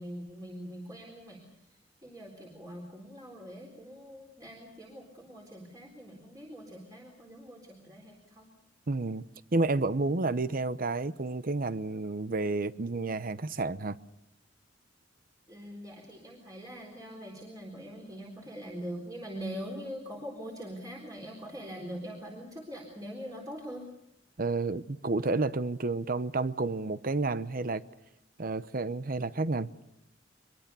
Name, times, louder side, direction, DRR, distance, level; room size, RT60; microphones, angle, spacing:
voice 1, 0.0-1.4 2.0-8.5 15.5-23.9, equal, 20° right, 4.0 m, -43 dB
voice 2, 8.9-9.2 9.5-14.0 24.4-27.8 28.4-29.7, right 3 dB, 50° right, 0.8 m, -30 dB
24.0 x 22.5 x 6.9 m
head